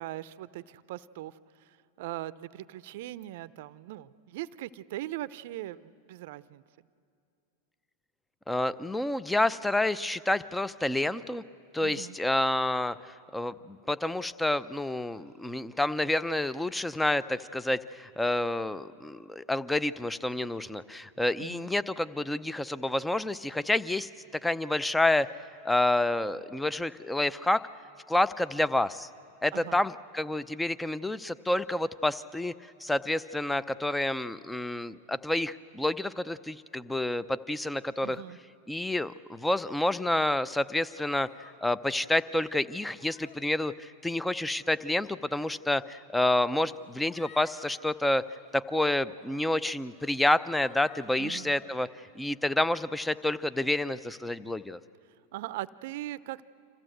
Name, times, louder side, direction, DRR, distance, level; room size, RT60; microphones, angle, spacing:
voice 1, 0.0-6.6 11.8-12.2 21.4-21.7 29.5-29.8 38.0-38.4 51.2-51.5 55.3-56.4, right 15 dB, 65° right, 17 dB, 0.6 m, -40 dB
voice 2, 8.5-11.4 11.7-13.0 13.3-24.1 24.4-25.3 25.6-27.6 28.1-29.1 29.4-32.5 32.8-38.2 38.7-48.2 48.5-51.9 52.2-54.8, left 1 dB, 5° left, 15 dB, 0.6 m, -29 dB
sound 1, 41.0-41.6 42.2-42.5 43.0-43.4 44.3-44.7 45.7-45.8 46.7-47.7 48.1-48.5 49.1-49.3 49.9-50.1 50.6-51.7, left 5 dB, 40° left, 2.3 m, -54 dB
27.0 x 15.0 x 7.9 m, 2.5 s
hypercardioid pair, 105°, 0 cm